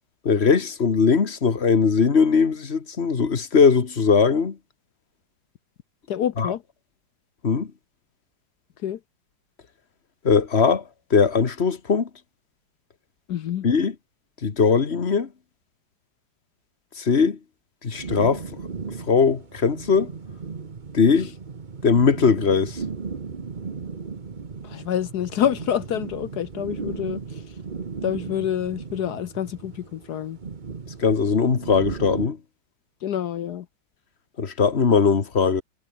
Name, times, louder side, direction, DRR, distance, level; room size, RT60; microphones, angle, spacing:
voice 1, 0.2-4.6 6.4-6.5 7.4-7.7 10.2-10.8 11.1-12.1 13.6-13.9 14.4-15.3 17.0-17.4 17.8-18.4 19.1-20.1 20.9-21.3 21.8-22.8 31.0-32.4 34.4-35.6, left 5 dB, 30° left, 1.6 m, -20 dB
voice 2, 6.1-6.6 8.8-9.0 13.3-13.7 24.6-27.4 28.0-30.4 33.0-33.7, left 10 dB, 60° left, 1.1 m, -27 dB
sound 1, 17.9-32.3, right 5 dB, 30° right, 0.9 m, -36 dB
omnidirectional pair, 2.4 m